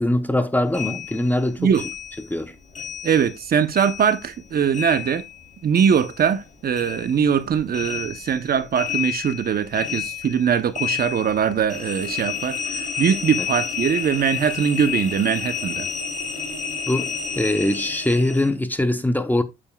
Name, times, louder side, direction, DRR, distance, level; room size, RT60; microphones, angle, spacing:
voice 1, 0.0-1.7 2.3-2.5 13.4-13.5 16.9-19.4, left 1 dB, 10° left, 0.9 m, -22 dB
sound 1, 0.7-3.5 3.7-6.5 6.7-18.5, left 8 dB, 40° left, 3.2 m, -31 dB
voice 2, 3.0-5.2 5.6-15.9, right 7 dB, 50° right, 0.8 m, -21 dB
8.7 x 7.0 x 2.3 m
cardioid pair, 90°, 20 cm